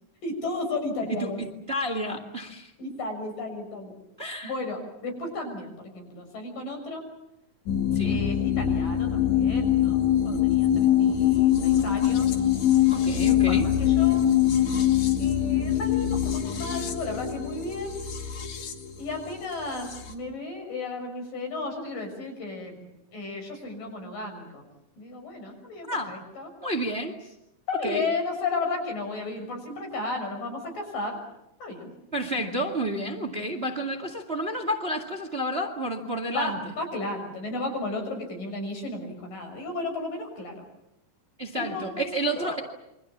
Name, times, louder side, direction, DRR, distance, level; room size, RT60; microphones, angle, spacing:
voice 1, 0.2-1.4 2.8-3.9 4.4-7.0 8.0-10.0 10.2-12.3 13.1-14.2 15.2-17.9 19.0-22.8 23.1-24.6 25.0-26.5 27.7-31.2 31.6-31.9 36.3-40.6 41.5-42.6, left 2 dB, 75° left, 4 dB, 8.1 m, -34 dB
voice 2, 1.1-2.7 4.2-4.5 7.9-8.2 12.9-13.7 25.9-26.2 26.6-27.2 27.8-28.1 32.1-36.6 41.4-42.6, right 1 dB, 20° right, 5 dB, 1.8 m, -30 dB
sound 1, 7.7-20.1, left 11 dB, 60° left, 3.3 m, -23 dB
28.5 x 24.5 x 7.3 m, 0.85 s
omnidirectional pair, 3.9 m